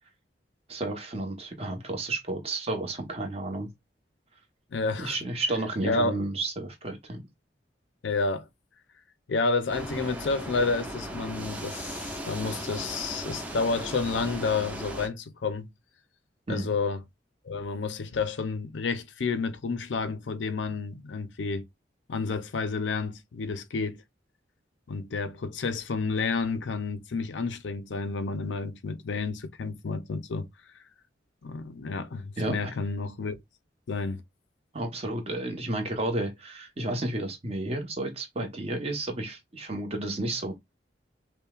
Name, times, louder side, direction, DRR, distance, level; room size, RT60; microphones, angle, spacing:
voice 1, 0.7-3.7 5.0-7.2 16.5-16.7 32.4-32.7 34.7-40.5, right 2 dB, 35° right, 1.0 m, -32 dB
voice 2, 4.7-5.2 5.8-6.2 8.0-8.5 9.3-15.7 16.5-17.0 17.4-21.6 22.1-24.0 24.9-30.5 31.4-33.4 33.9-34.2, left 4 dB, 80° left, 0.5 m, -30 dB
sound 1, 9.7-15.1, right 1 dB, 10° right, 0.6 m, -37 dB
5.4 x 2.2 x 2.3 m
head